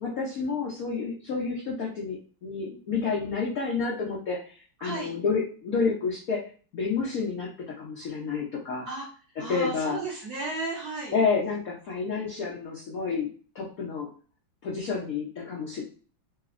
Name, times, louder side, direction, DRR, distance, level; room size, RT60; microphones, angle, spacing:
voice 1, 0.0-8.9 9.4-10.0 11.1-13.3 13.5-14.1 14.6-15.8, left 5 dB, 90° left, -3 dB, 0.7 m, -30 dB
voice 2, 4.8-5.1 8.8-9.1 9.4-11.2, right 3 dB, 65° right, -5 dB, 1.0 m, -34 dB
3.5 x 2.0 x 2.4 m, 0.39 s
omnidirectional pair, 2.3 m